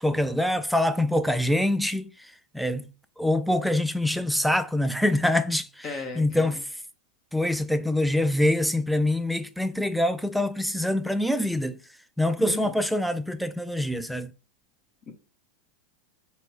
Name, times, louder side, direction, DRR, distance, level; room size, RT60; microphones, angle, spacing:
voice 1, 0.0-2.1 2.5-2.9 3.2-5.9 6.2-6.6 7.3-11.8 12.2-14.3, left 1 dB, ahead, 0.3 m, -25 dB
voice 2, 5.8-6.6 12.4-12.8 15.1-15.2, left 3 dB, 35° left, 0.7 m, -36 dB
4.2 x 2.1 x 2.7 m
hypercardioid pair, 110°, 0 cm